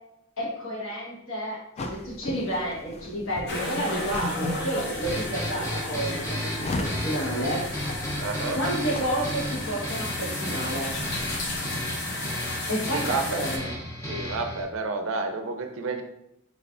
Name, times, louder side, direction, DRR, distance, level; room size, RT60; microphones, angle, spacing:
voice 1, 0.4-7.9 8.5-11.0 12.7-13.8, right 1 dB, 75° left, -4 dB, 1.3 m, -30 dB
sound 1, 1.8-9.7, left 2 dB, 30° left, 0.3 m, -38 dB
sound 2, 3.5-13.6, left 2 dB, 55° left, 0.7 m, -33 dB
sound 3, 5.0-14.6, equal, 15° left, 0.9 m, -34 dB
voice 2, 8.2-8.6 12.9-13.4 14.1-16.0, right 3 dB, 80° right, 5 dB, 0.5 m, -30 dB
4.0 x 3.2 x 2.5 m, 0.83 s
head